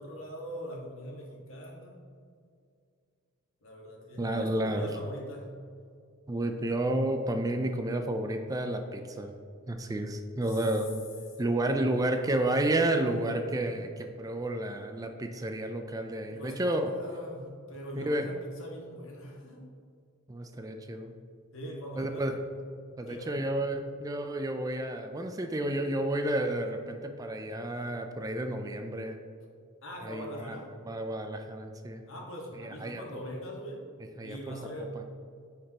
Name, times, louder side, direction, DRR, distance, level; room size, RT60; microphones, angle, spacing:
voice 1, 0.0-2.0 3.6-5.5 16.3-19.6 21.5-22.2 23.1-23.5 29.8-30.7 32.1-33.8 34.2-35.0, equal, 65° left, -1 dB, 1.6 m, -42 dB
voice 2, 4.2-4.9 6.3-9.3 9.7-11.0 11.4-16.9 18.0-18.3 20.3-21.1 22.0-22.4 23.0-29.2 30.0-30.6 30.9-32.0 32.5-33.0 34.2-34.6 34.9-35.0, right 1 dB, 15° right, 5 dB, 0.4 m, -31 dB
9.7 x 5.3 x 2.9 m, 2.3 s
head